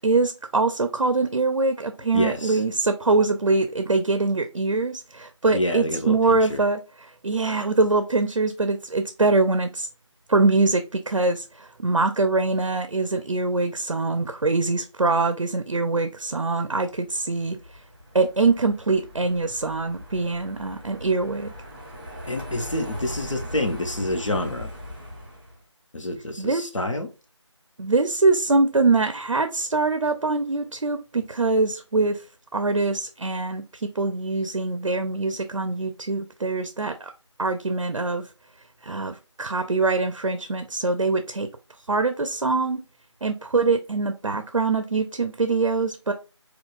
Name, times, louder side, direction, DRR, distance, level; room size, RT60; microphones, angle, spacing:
voice 1, 0.0-6.8 7.2-9.9 10.3-17.6 18.1-21.5 26.4-26.7 27.8-32.2 32.5-37.1 37.4-38.2 38.8-41.5 41.9-42.8 43.2-46.1, right 3 dB, 90° right, 0.5 m, -23 dB
voice 2, 2.1-2.6 5.5-6.6 22.2-24.7 25.9-27.1, left 1 dB, 80° left, 0.8 m, -28 dB
Car passing by, 17.1-25.6, equal, 20° right, 1.0 m, -40 dB
3.8 x 2.3 x 2.3 m
figure-of-eight pair, 165°, 16 cm